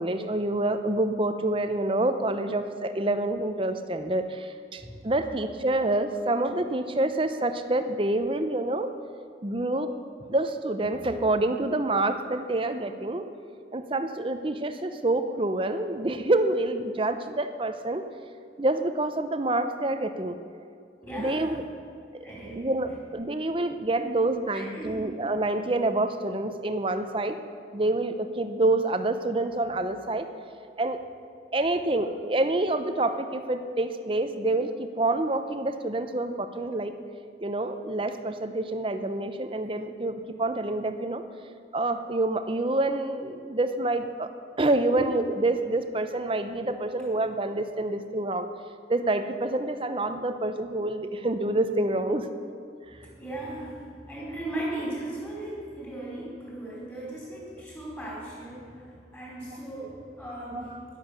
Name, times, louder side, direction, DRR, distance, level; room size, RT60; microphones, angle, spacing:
voice 1, 0.0-8.9 9.4-9.9 10.3-13.3 13.7-18.1 18.6-20.4 21.2-21.6 22.5-27.4 27.7-30.3 30.8-31.0 31.5-36.9 37.4-41.2 41.7-44.3 44.6-48.5 48.9-52.3 60.6-60.7, right 2 dB, 30° right, 8 dB, 0.7 m, -27 dB
voice 2, 21.0-21.7 22.2-22.6 22.8-23.0 24.5-25.0 52.8-61.0, right 1 dB, 15° left, -6 dB, 4.4 m, -37 dB
12.5 x 11.0 x 6.8 m, 2.4 s
head